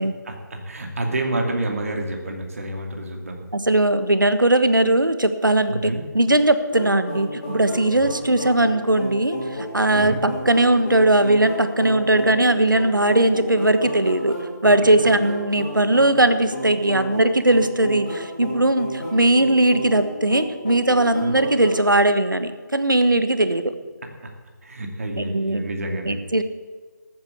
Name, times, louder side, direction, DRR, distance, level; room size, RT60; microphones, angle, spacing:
voice 1, 0.2-3.4 5.7-6.0 7.9-8.0 9.9-10.2 14.8-14.9 21.2-21.3 24.2-24.3 24.6-26.2, right 1 dB, 45° right, 3 dB, 2.6 m, -29 dB
voice 2, 3.5-14.4 14.6-23.7 25.2-25.6 26.0-26.4, right 1 dB, 85° right, 10 dB, 1.4 m, -19 dB
sound 1, 6.7-21.8, left 1 dB, 25° left, 4.6 m, -32 dB
14.5 x 9.1 x 7.3 m, 1.4 s
figure-of-eight pair, 160°, 10 cm